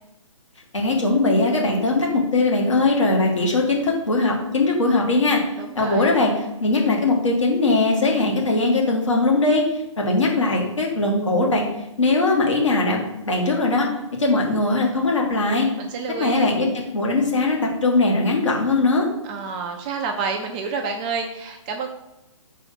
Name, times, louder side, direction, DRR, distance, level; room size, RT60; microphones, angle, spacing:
voice 1, 0.7-5.4 5.7-6.3 6.6-9.7 10.0-11.6 12.0-13.9 14.2-15.7 16.2-19.1, left 2 dB, 65° left, -1 dB, 1.7 m, -20 dB
voice 2, 5.6-6.1 15.8-16.5 19.2-21.9, right 5 dB, 15° right, 3 dB, 0.4 m, -29 dB
4.8 x 4.0 x 5.8 m, 0.95 s
figure-of-eight pair, 130°, 17 cm